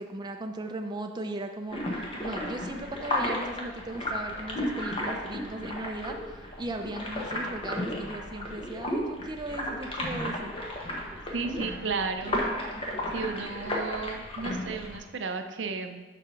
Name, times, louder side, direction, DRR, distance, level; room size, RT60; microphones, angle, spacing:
voice 1, 0.0-1.8 2.2-10.5, right 2 dB, 25° right, 3 dB, 0.5 m, -37 dB
sound 1, 1.7-15.0, left 1 dB, 30° left, 1.2 m, -33 dB
voice 2, 11.3-12.4 13.1-16.0, right 4 dB, 70° right, 7 dB, 0.6 m, -33 dB
7.0 x 4.9 x 5.7 m, 1.2 s
head